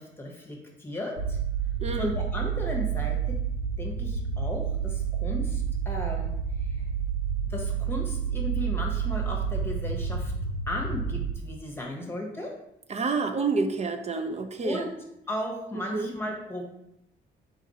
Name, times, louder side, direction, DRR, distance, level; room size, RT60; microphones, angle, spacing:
voice 1, 0.0-1.4 1.9-3.4 3.8-6.3 6.7-6.8 7.5-10.3 10.7-12.5 14.6-14.9 15.3-16.6, left 1 dB, 10° left, 0 dB, 1.1 m, -35 dB
sound 1, 1.2-11.3, right 7 dB, 90° right, 0.6 m, -29 dB
voice 2, 1.8-2.2 12.9-14.9 15.7-16.1, right 4 dB, 35° right, 7 dB, 0.4 m, -29 dB
3.9 x 2.5 x 4.0 m, 0.82 s
cardioid pair, 90°, 20 cm